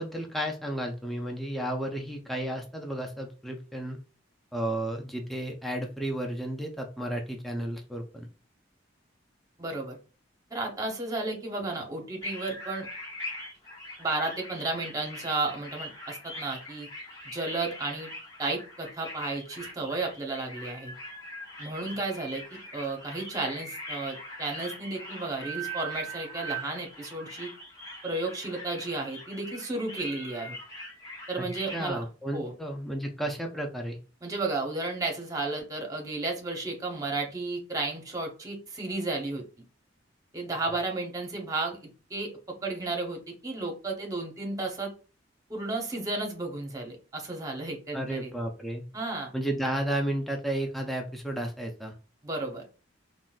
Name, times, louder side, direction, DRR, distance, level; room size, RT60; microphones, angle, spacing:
voice 1, 0.0-4.0 4.5-8.3 31.4-31.5 31.7-34.0 47.9-48.8 49.3-51.9, right 1 dB, ahead, 1 dB, 0.4 m, -32 dB
voice 2, 9.6-10.0 10.5-12.9 14.0-16.9 17.2-18.1 18.4-20.9 21.6-27.5 28.0-30.6 31.3-32.1 32.3-32.5 34.2-39.4 40.3-42.3 42.6-44.9 45.5-48.3 48.9-49.3 52.2-52.7, right 2 dB, 20° right, 1 dB, 0.7 m, -33 dB
sound 1, 12.2-31.9, right 1 dB, 20° left, 1.0 m, -42 dB
3.7 x 2.1 x 2.3 m, 0.35 s
head